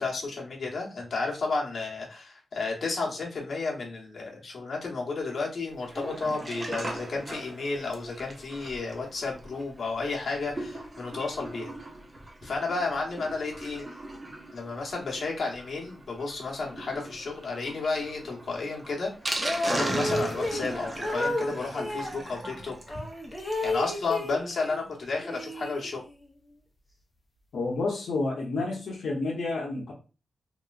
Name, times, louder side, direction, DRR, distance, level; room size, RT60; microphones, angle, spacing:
voice 1, 0.0-11.7 12.4-13.9 14.5-19.4 19.7-22.7 23.6-26.0, left 3 dB, 50° left, -2 dB, 1.0 m, -32 dB
Sink (filling or washing), 5.8-23.8 24.2-24.3 24.4-24.5 24.9-25.0, right 1 dB, 25° right, 0.6 m, -38 dB
sound 1, 19.3-22.2 22.9-24.9 25.2-26.3, left 1 dB, 15° left, 0.7 m, -32 dB
voice 2, 27.5-29.9, left 3 dB, 75° left, -3 dB, 0.8 m, -30 dB
3.0 x 2.9 x 2.4 m, 0.33 s
wide cardioid pair, 135°, 0 cm